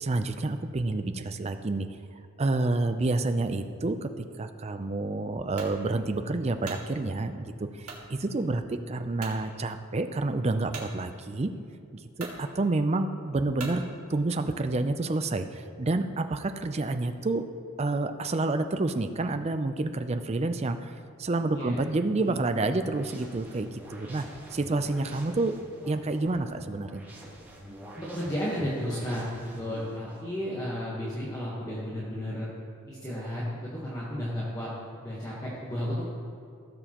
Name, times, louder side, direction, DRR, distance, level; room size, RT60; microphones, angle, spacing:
voice 1, 0.0-1.9 2.4-4.1 4.4-11.5 11.9-13.8 14.1-17.4 17.8-24.2 24.5-25.5 25.9-27.0, right 2 dB, 30° right, 8 dB, 0.4 m, -29 dB
sound 1, 5.6-5.8 6.4-6.9 7.8-8.1 8.6-8.7 9.2-9.4 10.7-10.9 11.7-11.8 12.1-12.4 13.6-13.8, right 4 dB, 80° right, 2.0 m, -40 dB
voice 2, 22.1-22.4 27.9-32.5 32.9-34.7 35.0-36.0, equal, 15° left, -7 dB, 1.2 m, -33 dB
sound 2, 22.2-30.2, equal, 10° right, 1.4 m, -47 dB
16.5 x 7.0 x 3.0 m, 2.4 s
head